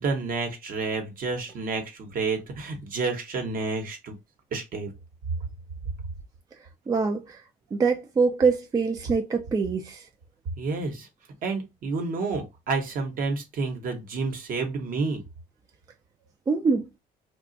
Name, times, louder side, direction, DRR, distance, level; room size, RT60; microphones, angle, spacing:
voice 1, 0.0-4.2 4.5-4.9 10.6-11.1 11.4-15.2, right 4 dB, 55° right, 1.0 m, -30 dB
voice 2, 6.9-7.2 7.7-10.0 16.5-16.9, right 4 dB, 20° right, 0.4 m, -24 dB
2.4 x 2.3 x 3.9 m
cardioid pair, 110°, 17 cm